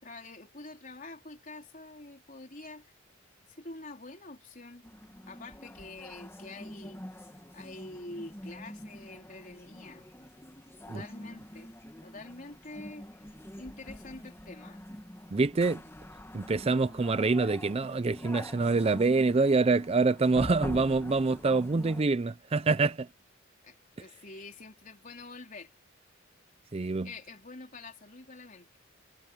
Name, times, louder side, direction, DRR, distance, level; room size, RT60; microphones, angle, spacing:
voice 1, 0.0-2.9 3.6-4.9 5.3-7.0 7.5-10.0 10.9-11.7 12.0-13.1 13.6-14.8 23.6-25.7 27.0-28.8, left 2 dB, 40° left, 3.9 m, -46 dB
sound 1, 4.8-22.0, left 1 dB, 10° left, 1.3 m, -45 dB
voice 2, 15.3-15.8 16.3-23.1 26.7-27.1, right 3 dB, 30° right, 0.4 m, -26 dB
head